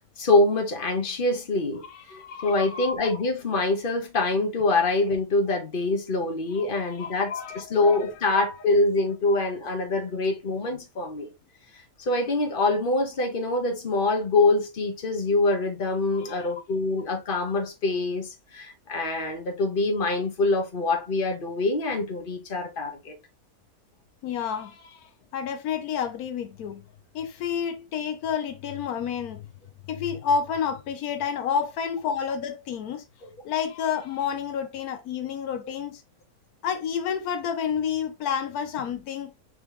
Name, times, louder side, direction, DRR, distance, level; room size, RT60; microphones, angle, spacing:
voice 1, 0.2-11.3 12.0-23.1 33.2-33.3, left 2 dB, 40° left, 1.3 m, -25 dB
voice 2, 1.8-2.6 6.5-7.1 7.4-8.0 16.1-16.5 24.2-26.8 27.1-29.4 29.9-33.0 33.4-36.0 36.6-39.3, left 7 dB, 80° left, 1.1 m, -30 dB
4.8 x 3.1 x 3.4 m
omnidirectional pair, 1.6 m